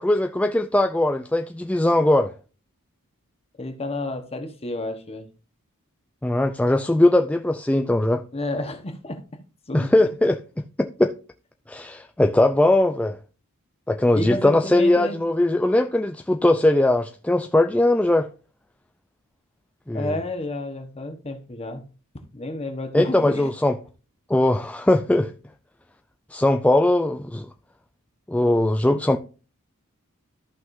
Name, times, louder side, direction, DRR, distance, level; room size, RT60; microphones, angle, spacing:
voice 1, 0.0-2.3 6.2-8.2 9.7-10.4 10.8-11.2 11.7-13.2 13.9-18.3 19.9-20.2 22.9-23.8 24.3-25.3 26.3-27.5 28.3-29.2, left 1 dB, 5° left, 0.4 m, -20 dB
voice 2, 3.6-5.3 8.3-9.2 9.7-9.9 14.1-15.2 19.9-21.9 22.3-23.5, left 1 dB, 25° left, 1.2 m, -30 dB
14.0 x 5.8 x 2.6 m
head